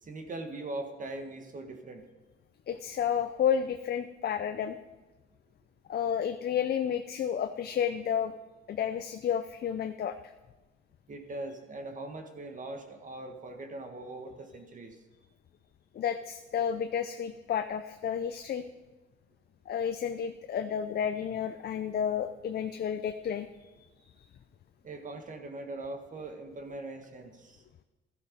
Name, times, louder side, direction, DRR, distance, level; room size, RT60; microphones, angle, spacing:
voice 1, 0.0-2.0 11.1-15.0 24.8-27.6, right 2 dB, 40° right, 5 dB, 1.6 m, -41 dB
voice 2, 2.7-4.8 5.9-8.3 8.7-10.1 15.9-18.6 19.7-23.5, left 8 dB, 55° left, 8 dB, 0.6 m, -31 dB
13.0 x 11.5 x 5.3 m, 1.1 s
cardioid pair, 90°, 20 cm